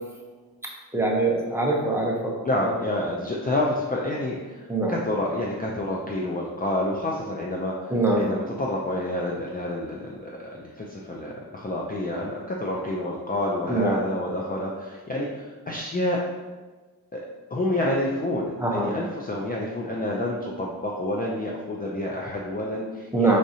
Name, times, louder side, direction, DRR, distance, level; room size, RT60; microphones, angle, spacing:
voice 1, 0.9-2.3 2.6-2.7 4.7-4.9 7.9-8.2 13.7-14.0 18.6-18.9 23.1-23.4, right 2 dB, 5° right, -3 dB, 0.7 m, -23 dB
voice 2, 2.4-16.3 17.1-17.2 17.5-23.4, left 1 dB, 25° left, -3 dB, 0.4 m, -28 dB
4.9 x 3.8 x 2.7 m, 1.3 s
wide cardioid pair, 130°, 39 cm